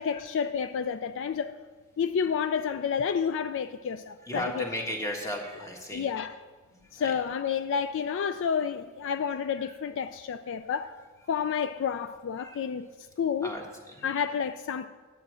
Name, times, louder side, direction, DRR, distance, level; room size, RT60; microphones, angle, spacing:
voice 1, 0.0-1.6 2.0-4.7 5.9-6.3 6.9-11.0 11.3-12.9 13.2-13.5 14.0-14.9, left 7 dB, 60° left, 0.3 m, -30 dB
voice 2, 4.2-6.1 6.7-7.1 9.6-9.7 12.4-12.6 13.4-14.2, equal, 15° left, 1.4 m, -36 dB
9.9 x 7.9 x 6.3 m
head